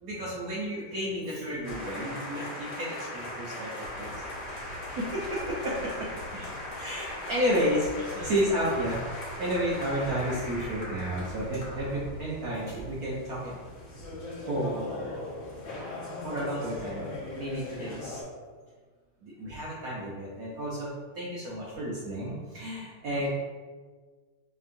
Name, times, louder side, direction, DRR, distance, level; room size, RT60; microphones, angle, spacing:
voice 1, 0.0-4.2 4.9-6.1 6.8-7.9 8.2-9.0 9.4-13.5 14.5-15.1 16.2-18.2 19.2-23.3, equal, 65° right, -6 dB, 0.9 m, -32 dB
sound 1, 1.6-18.2, left 1 dB, 45° left, 0.9 m, -39 dB
sound 2, 3.8-12.2, equal, 40° right, 1.0 m, -46 dB
voice 2, 6.3-6.6 7.5-7.7 7.9-8.7 16.8-16.9 17.8-18.0 23.1-23.3, left 2 dB, 85° left, -3 dB, 0.8 m, -46 dB
5.2 x 3.0 x 2.5 m, 1.5 s
omnidirectional pair, 2.3 m